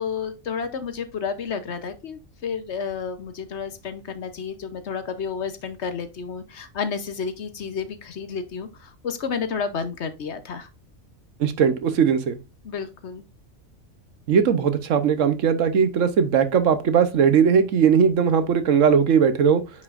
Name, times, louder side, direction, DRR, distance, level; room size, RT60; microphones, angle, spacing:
voice 1, 0.0-10.7 12.6-13.2, left 6 dB, 60° left, 1.0 m, -31 dB
voice 2, 11.4-12.4 14.3-19.6, right 7 dB, 70° right, 1.2 m, -19 dB
9.4 x 5.3 x 2.5 m
omnidirectional pair, 1.4 m